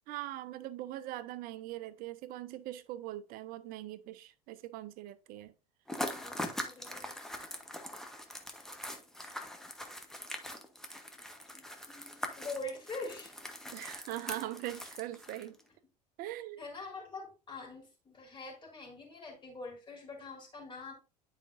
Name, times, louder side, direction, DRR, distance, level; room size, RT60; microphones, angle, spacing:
voice 1, 0.1-5.5 13.7-15.6 16.2-16.6, right 15 dB, 45° right, 0.6 m, -41 dB
sound 1, 5.9-15.6, left 1 dB, ahead, 1.1 m, -42 dB
voice 2, 6.1-7.2 12.4-13.3 16.6-20.9, left 2 dB, 25° left, 3.6 m, -44 dB
9.9 x 5.0 x 2.6 m
figure-of-eight pair, 75°, 21 cm